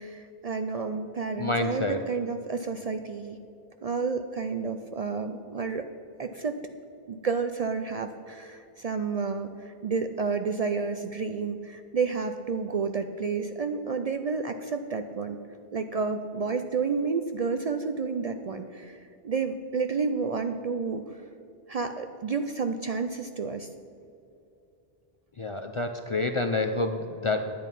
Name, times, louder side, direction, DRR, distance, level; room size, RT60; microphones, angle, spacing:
voice 1, 0.0-3.4 3.8-5.9 6.2-6.6 7.1-15.4 15.7-21.2 21.7-23.7, right 5 dB, 50° right, 7 dB, 0.5 m, -30 dB
voice 2, 1.4-2.0 25.4-27.5, left 2 dB, 45° left, 6 dB, 0.4 m, -28 dB
10.5 x 9.1 x 5.3 m, 2.7 s
omnidirectional pair, 1.0 m